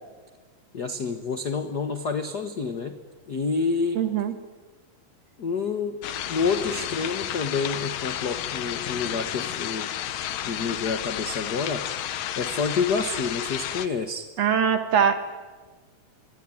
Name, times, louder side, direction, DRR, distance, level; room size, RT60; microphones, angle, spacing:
voice 1, 0.7-3.0 3.3-4.1 5.4-6.0 6.3-9.9 10.5-11.9 12.4-14.3, left 5 dB, 60° left, 8 dB, 1.1 m, -28 dB
voice 2, 4.0-4.3 14.4-15.2, right 7 dB, 55° right, 8 dB, 2.8 m, -22 dB
sound 1, 6.0-13.9, left 11 dB, 80° left, 2.8 m, -32 dB
26.5 x 23.0 x 9.9 m, 1.3 s
omnidirectional pair, 3.9 m